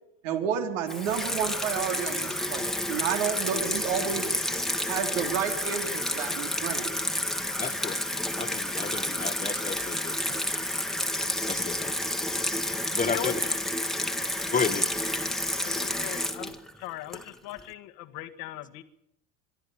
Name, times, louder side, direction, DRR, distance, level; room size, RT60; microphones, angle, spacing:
voice 1, 0.2-4.3 4.9-6.9, right 8 dB, 80° right, 5 dB, 3.8 m, -30 dB
Water tap faucet / Sink (filling or washing), 0.9-17.6, left 1 dB, ahead, 1.5 m, -30 dB
voice 2, 7.6-8.0 8.4-10.4 11.5-11.9 12.9-13.4 14.5-14.9, left 5 dB, 20° left, 11 dB, 1.4 m, -32 dB
voice 3, 15.6-16.5 16.8-18.8, left 16 dB, 70° left, 8 dB, 1.9 m, -38 dB
23.0 x 12.5 x 9.9 m, 0.79 s
supercardioid pair, 110°, 37 cm